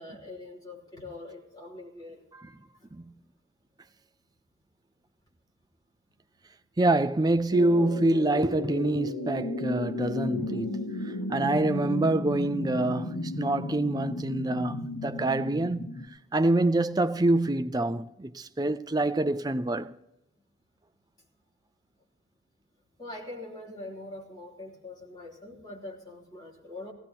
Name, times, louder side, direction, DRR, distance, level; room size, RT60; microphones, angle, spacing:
voice 1, 0.0-2.3 23.0-26.9, left 2 dB, 20° left, 3.3 m, -43 dB
voice 2, 6.8-10.8 11.3-15.9 16.3-19.9, right 2 dB, 20° right, 0.4 m, -26 dB
sound 1, 7.5-16.1, left 1 dB, 85° left, 1.7 m, -34 dB
18.5 x 16.5 x 2.9 m
head